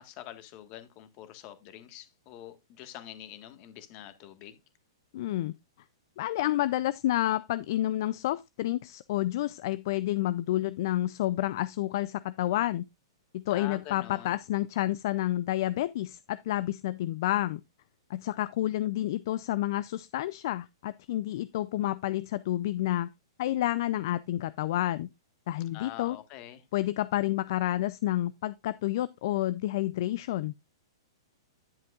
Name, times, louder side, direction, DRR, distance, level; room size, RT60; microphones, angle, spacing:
voice 1, 0.0-4.6 13.5-14.4 25.7-26.6, left 12 dB, 40° left, 1.5 m, -45 dB
voice 2, 5.1-5.5 6.2-12.8 13.3-17.6 18.1-23.1 23.4-25.1 25.5-26.2 26.7-30.5, left 14 dB, 55° left, 0.4 m, -29 dB
10.5 x 7.5 x 2.4 m
hypercardioid pair, 135°, 2 cm